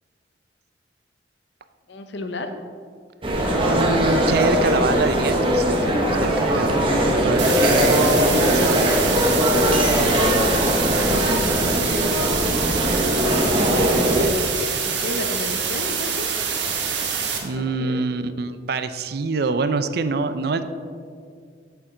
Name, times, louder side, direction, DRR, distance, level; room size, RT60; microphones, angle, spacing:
voice 1, 1.9-2.5 9.9-10.6 10.9-11.7 14.9-16.3 17.6-18.0, left 2 dB, 80° left, 7 dB, 0.7 m, -33 dB
sound 1, 3.2-14.3, equal, 30° right, 1.1 m, -20 dB
voice 2, 3.6-8.8 17.4-20.6, right 3 dB, 60° right, 11 dB, 0.4 m, -26 dB
sound 2, 7.4-17.4, right 6 dB, 85° right, 1.2 m, -26 dB
8.8 x 7.0 x 3.8 m, 2.2 s
head